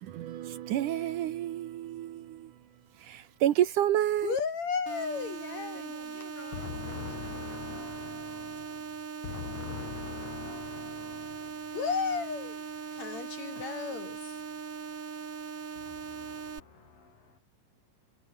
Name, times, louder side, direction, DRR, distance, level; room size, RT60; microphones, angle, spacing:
voice 1, 0.0-2.5 3.0-4.4, right 12 dB, 70° right, 2.5 m, -29 dB
voice 2, 4.2-6.2 6.5-11.3 11.7-14.4, left 6 dB, 60° left, 3.1 m, -36 dB
sound 1, 4.9-16.6, right 5 dB, 45° right, 3.8 m, -40 dB
voice 3, 5.7-7.8 10.1-11.8 12.7-13.6 15.8-17.4, left 4 dB, 85° left, 8.9 m, -56 dB
omnidirectional pair, 3.9 m